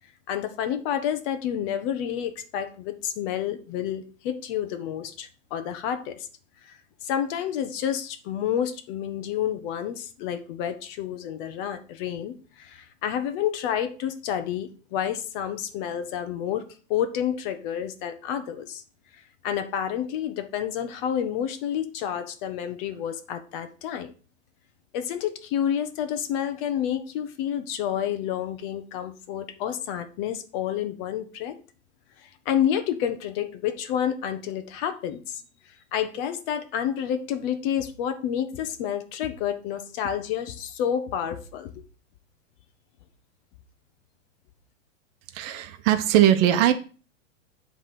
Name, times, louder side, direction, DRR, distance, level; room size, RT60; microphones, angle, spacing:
voice 1, 0.3-6.3 6.7-6.8 7.0-16.6 16.9-18.8 19.4-24.1 24.9-31.6 32.2-35.4 35.9-41.8, left 9 dB, 45° left, 11 dB, 1.1 m, -29 dB
voice 2, 45.3-46.7, right 11 dB, 40° right, 8 dB, 1.0 m, -20 dB
9.9 x 3.6 x 6.1 m, 0.37 s
hypercardioid pair, 125°, 38 cm